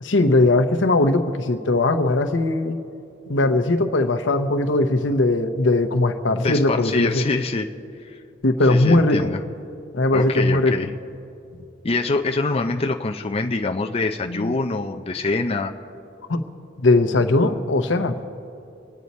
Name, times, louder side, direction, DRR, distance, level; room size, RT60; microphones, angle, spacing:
voice 1, 0.0-2.8 3.3-7.2 8.4-9.3 9.9-10.9 14.2-14.6 16.3-16.4 16.8-18.1, left 2 dB, 80° left, 6 dB, 0.9 m, -19 dB
voice 2, 6.3-7.7 8.0-8.2 8.7-9.4 10.1-10.9 11.8-15.7, left 3 dB, 35° left, 3 dB, 0.5 m, -25 dB
25.5 x 9.4 x 4.2 m, 2.6 s
head